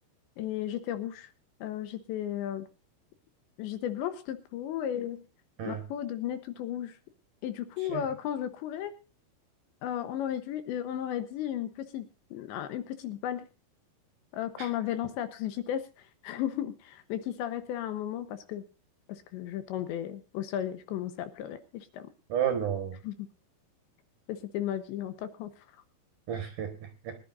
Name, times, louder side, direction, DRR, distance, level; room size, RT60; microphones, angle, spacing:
voice 1, 0.4-1.3 1.6-2.7 3.6-5.2 5.6-6.9 7.4-8.9 9.8-13.5 14.3-15.9 16.2-18.6 19.1-22.0 23.0-23.1 24.3-25.5, left 11 dB, 75° left, 3.1 m, -34 dB
voice 2, 22.3-23.0 26.3-27.2, right 9 dB, 60° right, 2.4 m, -32 dB
23.5 x 11.5 x 2.6 m
omnidirectional pair, 5.5 m